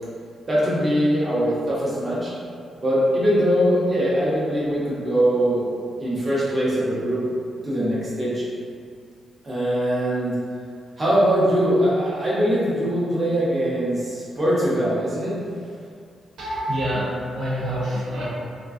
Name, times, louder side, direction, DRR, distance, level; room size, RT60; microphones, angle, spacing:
voice 1, 0.5-2.3 2.8-5.6 6.0-7.2 7.6-8.4 9.4-10.4 11.0-15.4, equal, 20° right, -9 dB, 0.7 m, -22 dB
voice 2, 16.4-18.2, equal, 80° right, -8 dB, 0.8 m, -26 dB
3.6 x 2.3 x 2.5 m, 2.3 s
wide cardioid pair, 170°, 0 cm